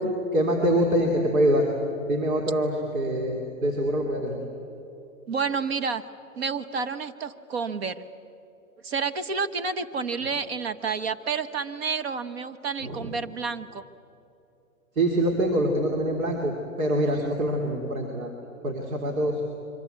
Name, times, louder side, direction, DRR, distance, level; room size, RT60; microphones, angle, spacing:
voice 1, 0.3-1.7 2.1-4.4 12.8-13.1 15.0-18.3 18.6-19.4, right 1 dB, 80° right, 1 dB, 3.7 m, -25 dB
voice 2, 5.3-6.0 6.4-8.0 8.8-13.8, right 5 dB, 50° right, 10 dB, 1.2 m, -30 dB
25.0 x 23.5 x 8.2 m, 2.8 s
hypercardioid pair, 160°, 41 cm